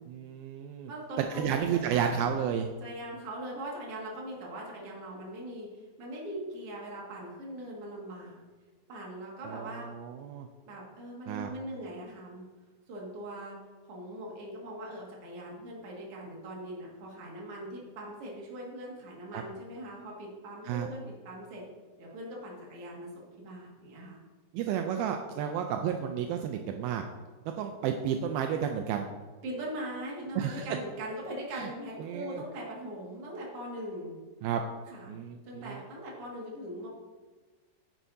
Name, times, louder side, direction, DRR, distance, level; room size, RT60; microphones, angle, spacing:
voice 1, 0.1-0.9 1.2-2.7 9.5-10.5 11.3-11.5 19.3-19.4 20.6-20.9 24.5-27.0 27.6-29.1 30.4-30.7 31.5-31.7 32.0-32.4 34.4-34.6 35.1-35.8, right 8 dB, 85° right, 5 dB, 2.1 m, -32 dB
voice 2, 0.9-2.3 2.8-8.4 8.9-9.9 10.6-12.5 12.9-13.6 13.9-21.6 22.0-24.2 29.4-34.2 34.8-35.1 35.4-36.9, right 1 dB, 45° right, -3 dB, 2.3 m, -41 dB
10.5 x 9.1 x 2.7 m, 1.4 s
omnidirectional pair, 4.8 m